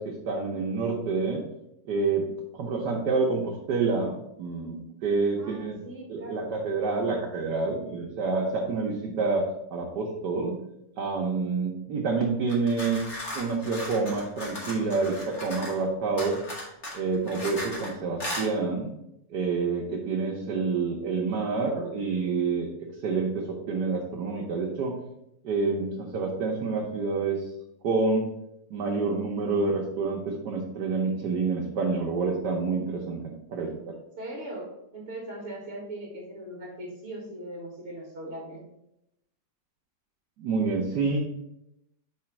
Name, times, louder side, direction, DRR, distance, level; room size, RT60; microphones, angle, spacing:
voice 1, 0.0-1.4 1.9-2.3 2.5-5.8 6.1-10.6 11.0-13.1 13.3-16.4 16.9-18.9 19.3-22.7 23.0-24.9 25.4-27.4 27.8-28.3 28.7-33.9 40.4-41.2, right 4 dB, 70° right, -2 dB, 1.4 m, -28 dB
voice 2, 5.4-6.6 34.2-38.6, right 1 dB, 45° right, -3 dB, 1.8 m, -39 dB
sound 1, 12.5-15.8 16.2-17.9 18.2-18.5, left 1 dB, 40° left, 2.1 m, -37 dB
4.9 x 4.2 x 5.8 m, 0.84 s
omnidirectional pair, 1.9 m